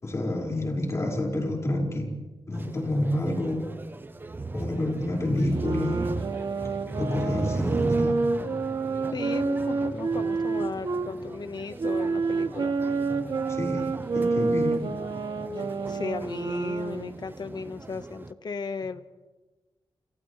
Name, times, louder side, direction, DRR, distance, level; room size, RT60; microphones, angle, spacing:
voice 1, 0.0-2.1 2.5-3.8 4.5-6.1 7.0-8.3 13.5-14.9, left 1 dB, 35° left, 0 dB, 5.3 m, -29 dB
sound 1, 2.5-18.3, right 3 dB, 25° right, 0.9 m, -37 dB
sound 2, 5.4-11.1 11.8-17.2, right 4 dB, 65° right, 2.3 m, -28 dB
voice 2, 9.1-12.8 15.6-19.0, left 5 dB, 55° left, 10 dB, 1.3 m, -36 dB
30.0 x 29.0 x 3.3 m, 1.2 s
wide cardioid pair, 130°, 9 cm